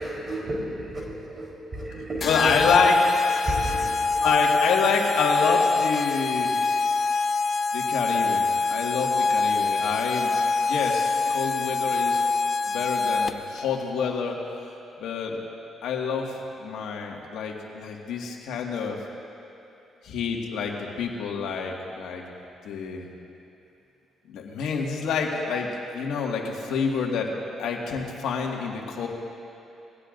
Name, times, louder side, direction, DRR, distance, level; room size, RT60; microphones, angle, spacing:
voice 1, 0.0-2.8 3.4-4.3 6.2-6.3, right 1 dB, 35° right, -4 dB, 3.7 m, -33 dB
voice 2, 2.2-3.0 4.2-6.6 7.7-10.3 10.6-12.2 12.7-14.4 15.0-15.4 15.8-19.0 20.0-22.2 22.6-23.1 24.3-27.3 27.6-29.1, left 5 dB, 85° left, 0 dB, 1.8 m, -27 dB
sound 1, 2.2-13.6, left 4 dB, 45° left, 0.6 m, -24 dB
22.5 x 16.5 x 2.6 m, 2.8 s
cardioid pair, 90°, 0 cm